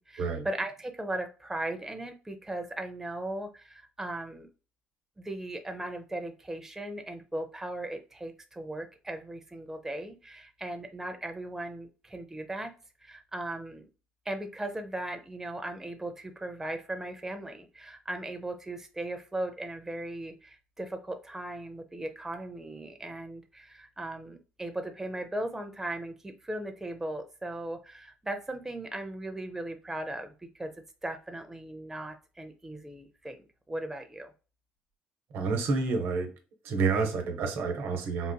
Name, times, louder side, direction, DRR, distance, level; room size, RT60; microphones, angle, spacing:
voice 1, 0.1-4.5 5.2-12.7 13.0-13.9 14.3-30.7 31.0-33.4 33.7-34.3, right 1 dB, 10° right, 5 dB, 0.6 m, -38 dB
voice 2, 35.3-36.3 36.6-38.3, right 4 dB, 70° right, 5 dB, 0.9 m, -29 dB
3.9 x 2.5 x 2.2 m, 0.33 s
supercardioid pair, 75°, 4 cm